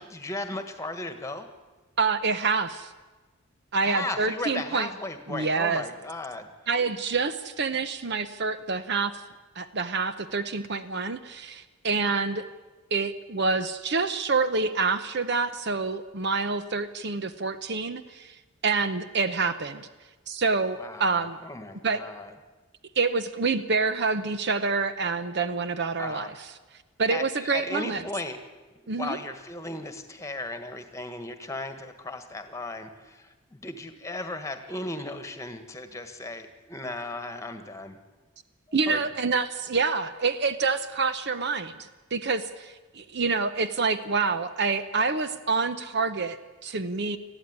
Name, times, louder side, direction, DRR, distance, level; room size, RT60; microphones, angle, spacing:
voice 1, 0.0-1.5 3.8-6.5 20.8-22.3 26.0-26.3 27.1-28.4 28.7-38.0 38.8-39.0, left 2 dB, 15° left, 8 dB, 1.6 m, -36 dB
voice 2, 2.0-2.9 3.7-4.9 5.3-5.8 6.7-9.2 9.6-12.4 12.9-18.4 18.6-19.9 20.3-21.4 21.8-22.0 23.0-26.3 27.0-28.0 28.9-29.2 38.7-47.2, right 4 dB, 50° right, 11 dB, 0.8 m, -27 dB
20.0 x 14.0 x 9.6 m, 1.2 s
head